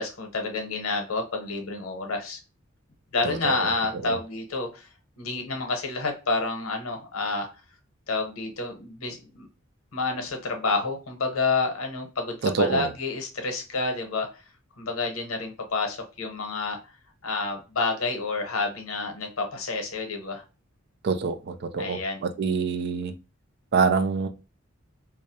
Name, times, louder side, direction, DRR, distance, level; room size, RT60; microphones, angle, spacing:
voice 1, 0.0-2.4 3.1-4.9 5.2-7.5 8.1-9.5 9.9-14.4 14.8-16.9 17.2-20.4 21.8-22.2, left 3 dB, 85° left, 0.8 m, -29 dB
voice 2, 12.4-12.9 21.0-23.1 23.7-24.3, right 5 dB, 55° right, 0.3 m, -25 dB
2.3 x 2.1 x 2.7 m
head